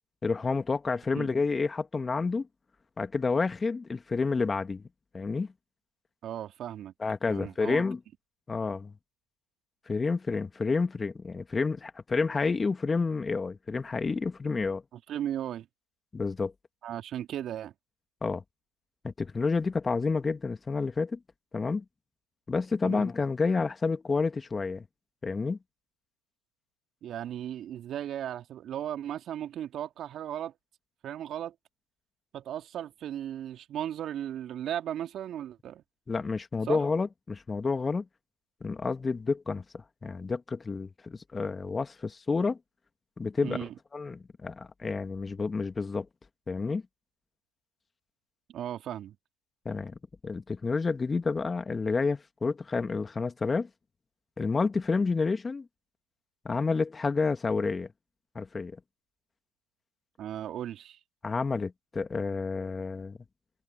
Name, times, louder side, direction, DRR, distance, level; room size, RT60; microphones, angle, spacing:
voice 1, 0.2-2.5 3.0-4.8 5.1-5.5 7.0-8.0 8.5-8.9 9.9-14.8 16.1-16.5 18.2-18.4 19.0-21.2 21.5-21.8 22.5-24.9 25.2-25.6 36.1-38.1 38.6-42.6 43.2-46.1 46.5-46.8 49.7-49.9 50.2-53.7 54.4-55.7 56.4-57.9 58.4-58.7 61.2-63.1, left 4 dB, 20° left, 2.1 m, -29 dB
voice 2, 6.2-6.9 7.3-7.8 14.9-15.7 16.8-17.7 22.8-23.1 27.0-30.5 31.0-31.5 32.3-35.8 36.7-36.8 43.4-43.7 48.5-49.2 60.2-61.0, right 11 dB, 40° right, 2.4 m, -36 dB
hypercardioid pair, 85°, 0 cm